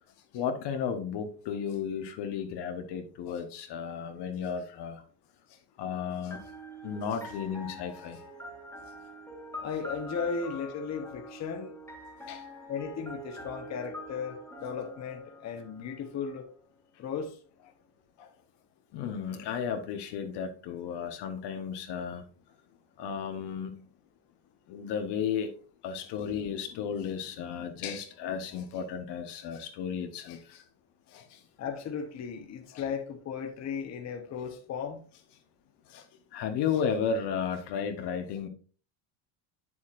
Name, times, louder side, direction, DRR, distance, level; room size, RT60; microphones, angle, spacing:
voice 1, 0.3-5.0 5.8-6.4 6.8-8.2 12.3-12.4 18.2-18.3 18.9-22.2 23.0-23.8 24.7-25.5 25.8-30.6 31.1-31.4 32.7-32.8 35.9-36.0 36.3-38.5, left 7 dB, 55° left, 1.1 m, -34 dB
sound 1, 6.3-16.1, equal, 5° left, 1.5 m, -45 dB
voice 2, 9.6-11.7 12.7-16.5 17.0-17.4 31.6-35.0, left 6 dB, 30° left, 1.1 m, -36 dB
8.1 x 7.2 x 2.5 m
cardioid pair, 150°, 50 cm